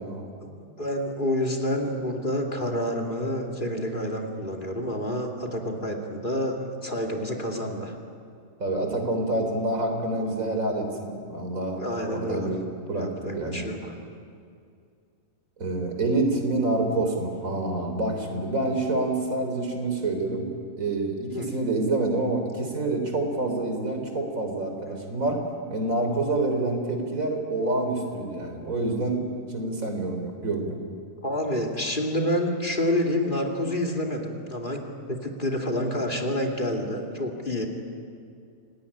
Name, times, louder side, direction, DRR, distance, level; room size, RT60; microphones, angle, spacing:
voice 1, 0.4-7.9 11.8-12.5 12.9-14.0 21.3-21.5 31.2-34.8 35.1-37.7, left 1 dB, 35° left, 1 dB, 2.8 m, -28 dB
voice 2, 8.6-12.6 12.9-13.1 13.3-13.7 15.6-20.5 20.8-25.4 25.7-30.8, right 2 dB, 80° right, 4 dB, 3.9 m, -27 dB
28.0 x 18.5 x 10.0 m, 2.3 s
omnidirectional pair, 1.4 m